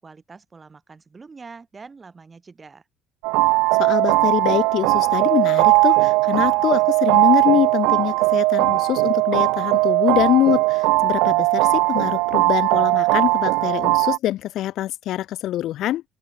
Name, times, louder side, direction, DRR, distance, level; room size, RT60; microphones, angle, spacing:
voice 1, 0.0-2.8, right 4 dB, 20° right, 3.1 m, -44 dB
sound 1, 3.2-14.2, right 25 dB, 90° right, 0.4 m, -19 dB
voice 2, 3.8-16.0, left 13 dB, 55° left, 0.3 m, -24 dB
cardioid pair, 150°, 0 cm